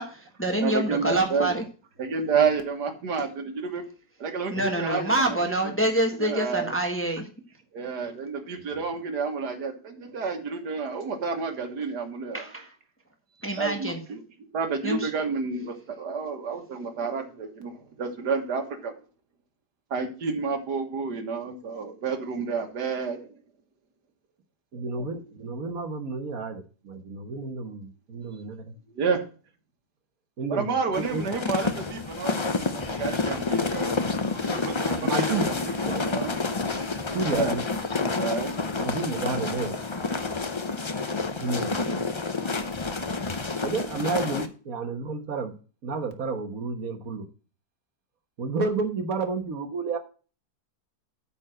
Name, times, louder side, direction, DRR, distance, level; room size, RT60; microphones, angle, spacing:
voice 1, 0.0-1.6 4.5-7.3 12.3-12.7 13.4-14.0 14.8-15.1, right 1 dB, 10° left, 4 dB, 1.2 m, -26 dB
voice 2, 0.6-1.5 2.0-3.8 4.2-5.4 6.2-6.7 7.7-12.4 13.6-14.2 14.5-18.9 19.9-23.2 24.7-25.2 29.0-29.2 30.5-34.0 34.4-36.4 37.3-37.6 38.2-38.6, right 5 dB, 80° right, 6 dB, 2.0 m, -30 dB
voice 3, 24.7-28.6 30.4-30.7 31.1-31.2 35.0-35.5 35.9-36.0 37.1-37.6 38.8-39.8 41.4-41.8 43.6-45.5 45.8-47.2 48.4-50.0, right 4 dB, 60° right, 7 dB, 1.6 m, -30 dB
sound 1, 30.9-44.5, left 3 dB, 40° left, 0.4 m, -29 dB
8.7 x 4.5 x 7.5 m, 0.37 s
omnidirectional pair, 1.7 m